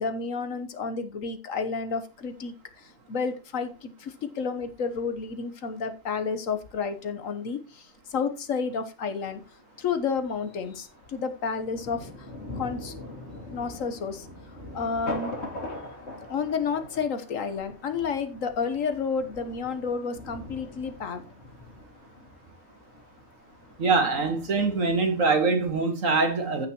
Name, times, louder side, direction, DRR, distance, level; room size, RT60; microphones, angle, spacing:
voice 1, 0.0-9.4 9.8-12.3 12.5-13.0 13.5-14.3 14.7-15.3 16.3-21.3, left 5 dB, 70° left, 1.4 m, -31 dB
Thunder, 9.1-25.3, left 1 dB, 50° left, 2.7 m, -43 dB
voice 2, 23.8-26.7, right 4 dB, 65° right, 2.2 m, -23 dB
15.5 x 5.8 x 3.0 m
omnidirectional pair, 1.5 m